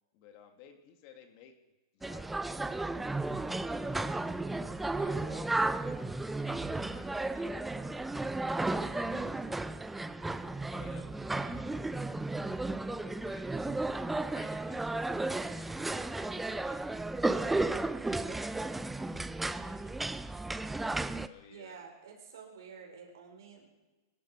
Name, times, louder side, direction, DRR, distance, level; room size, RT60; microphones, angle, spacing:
voice 1, 0.1-1.6 1.9-2.9 3.5-8.1 8.8-10.4 10.7-12.1 12.7-13.7 14.3-15.7 16.1-16.8 17.5-18.7 19.0-20.0 20.5-20.6 20.8-21.8, left 8 dB, 45° left, 6 dB, 2.1 m, -56 dB
sound 1, 2.0-21.3, right 2 dB, 5° right, 0.5 m, -34 dB
voice 2, 21.5-23.7, right 6 dB, 75° right, 2 dB, 4.5 m, -50 dB
21.5 x 11.5 x 4.8 m, 1.2 s
hypercardioid pair, 130°, 2 cm